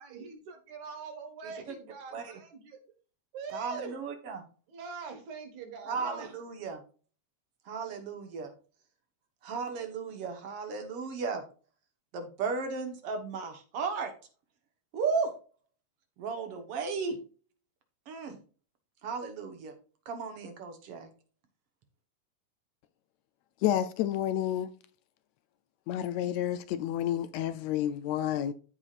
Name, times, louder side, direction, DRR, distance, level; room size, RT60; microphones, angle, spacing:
voice 1, 0.0-2.8 3.3-4.0 4.7-6.3, right 5 dB, 80° right, 2.9 m, -43 dB
voice 2, 3.5-4.4 5.9-6.8 7.7-8.5 9.4-11.4 12.1-14.1 14.9-15.3 16.2-17.2 18.1-18.4 19.0-19.7 20.1-21.1, right 5 dB, 60° right, 2.0 m, -35 dB
voice 3, 23.6-24.7 25.9-28.5, left 11 dB, 80° left, 1.7 m, -30 dB
14.5 x 4.8 x 2.4 m
omnidirectional pair, 3.3 m